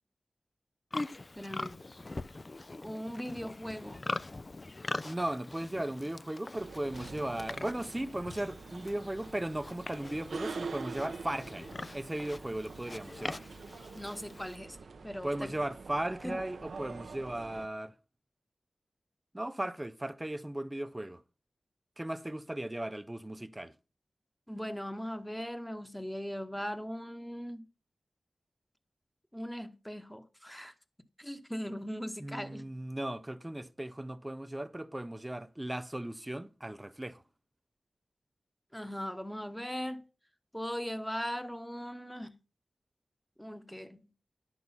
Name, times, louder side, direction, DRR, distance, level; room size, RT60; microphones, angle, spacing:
Livestock farm animals working animals, 0.9-14.6, left 2 dB, 40° left, 0.4 m, -43 dB
voice 1, 1.3-1.8 2.8-4.0 13.9-14.8 15.0-15.5 16.2-16.4 24.5-27.6 29.3-30.7 31.2-32.6 38.7-40.0 40.5-42.4 43.4-44.1, equal, 5° left, 1.1 m, -39 dB
voice 2, 5.0-11.7 11.9-13.5 15.2-17.9 19.3-21.2 22.0-23.7 32.2-37.2, right 1 dB, 15° right, 0.6 m, -37 dB
sound 1, 6.6-17.7, right 4 dB, 85° right, 0.7 m, -45 dB
10.5 x 6.2 x 5.5 m
wide cardioid pair, 70°, 0 cm